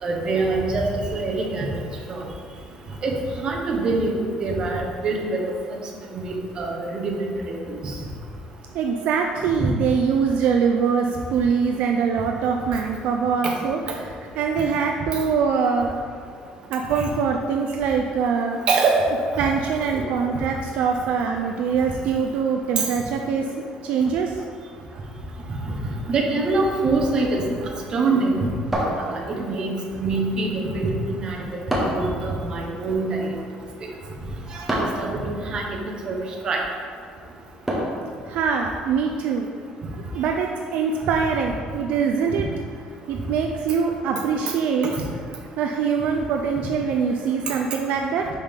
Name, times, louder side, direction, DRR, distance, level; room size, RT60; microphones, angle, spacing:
voice 1, 0.0-0.8 1.1-1.7 2.1-2.2 3.0-5.4 6.1-7.9 9.6-9.7 13.4-13.5 13.9-14.0 17.0-17.1 18.7-19.4 19.9-20.0 22.8-22.9 25.7-25.8 26.1-28.5 29.0-33.3 33.8-33.9 34.5-35.8 36.0-36.2 36.4-36.6 47.5-47.6, right 3 dB, 35° right, 0 dB, 0.8 m, -25 dB
voice 2, 8.7-13.8 14.4-16.0 16.7-18.7 19.4-23.5 23.8-24.4 38.3-39.5 39.9-42.5 43.1-45.0 45.6-48.3, right 6 dB, 65° right, 2 dB, 0.4 m, -23 dB
sound 1, 28.7-29.6 31.7-32.2 34.7-35.1 37.7-38.1, equal, 5° right, 0.9 m, -25 dB
5.6 x 5.1 x 3.5 m, 2.1 s
cardioid pair, 170°, 3 cm